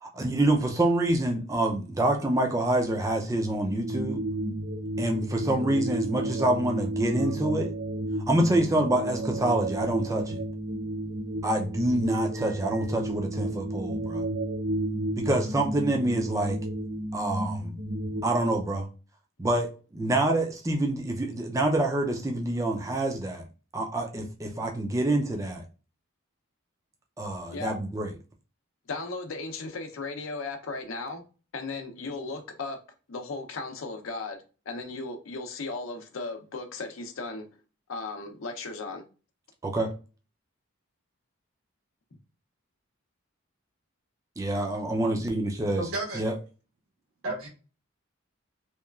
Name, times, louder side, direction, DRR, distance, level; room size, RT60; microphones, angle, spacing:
voice 1, 0.0-4.2 5.0-7.7 8.3-10.4 11.4-14.2 15.2-16.6 17.1-17.8 18.2-18.9 19.4-23.4 23.7-25.6 27.2-28.1 39.6-39.9 44.4-45.9 46.1-46.3, right 1 dB, 15° right, 0.3 m, -26 dB
sound 1, 3.4-18.2, right 1 dB, 75° right, 0.5 m, -32 dB
voice 2, 28.9-31.2 31.5-32.8 33.1-34.4 34.7-37.4 37.9-39.0, left 3 dB, 75° left, 0.6 m, -36 dB
voice 3, 45.8-46.2 47.2-47.5, right 2 dB, 90° right, 1.3 m, -32 dB
2.9 x 2.3 x 2.2 m
head